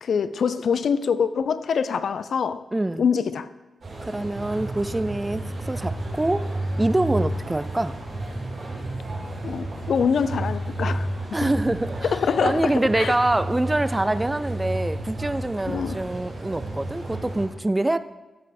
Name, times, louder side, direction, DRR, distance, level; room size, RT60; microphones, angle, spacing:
voice 1, 0.0-2.6 3.0-3.5 9.4-11.1 11.4-11.5 12.0-13.1 15.7-16.0, left 6 dB, 70° left, 0.4 m, -24 dB
voice 2, 2.7-3.0 4.0-8.0 11.3-18.0, right 1 dB, 15° right, 0.3 m, -25 dB
sound 1, 3.8-17.5, right 1 dB, 60° right, 3.3 m, -31 dB
14.0 x 5.3 x 4.2 m
wide cardioid pair, 120°, 0 cm